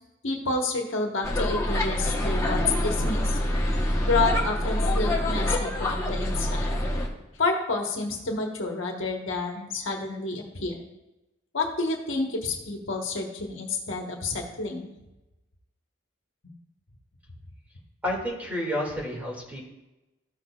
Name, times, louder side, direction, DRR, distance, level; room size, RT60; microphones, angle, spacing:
voice 1, 0.2-3.4 4.0-6.7 7.4-10.8 11.5-14.9 16.4-16.5, left 3 dB, 75° left, 1 dB, 1.3 m, -29 dB
sound 1, 1.2-7.1, left 1 dB, 15° left, 1.0 m, -26 dB
voice 2, 18.0-19.6, left 1 dB, 10° right, -3 dB, 2.2 m, -30 dB
14.0 x 6.1 x 2.4 m, 0.97 s
head